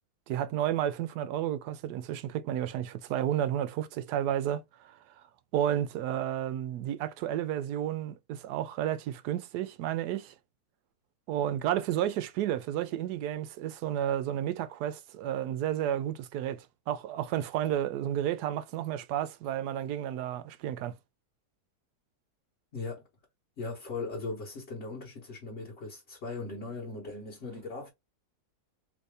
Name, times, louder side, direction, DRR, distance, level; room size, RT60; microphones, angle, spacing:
voice 1, 0.3-5.0 5.5-10.3 11.3-20.9, right 11 dB, 80° right, 1.1 m, -32 dB
voice 2, 22.7-23.0 23.6-27.9, left 3 dB, 45° left, 1.3 m, -38 dB
3.2 x 2.7 x 3.3 m
omnidirectional pair, 1.7 m